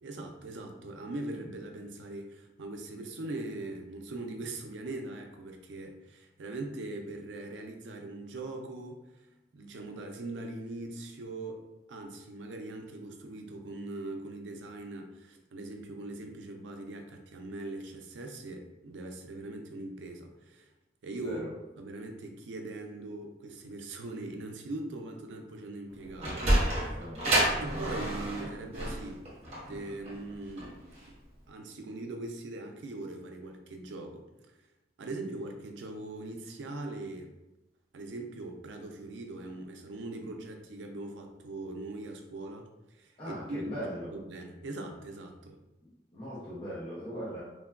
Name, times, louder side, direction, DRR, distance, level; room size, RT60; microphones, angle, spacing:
voice 1, 0.0-9.3 9.5-11.6 11.9-20.7 21.0-21.4 21.8-27.0 27.6-29.2 29.7-31.2 31.5-34.6 35.0-37.3 37.9-45.6, right 2 dB, 85° right, 4 dB, 0.4 m, -41 dB
Sliding door, 25.9-31.1, right 1 dB, 35° right, 0.9 m, -29 dB
voice 2, 43.2-44.1 46.1-47.4, equal, 30° left, -9 dB, 0.5 m, -39 dB
3.2 x 2.2 x 2.3 m, 0.99 s
head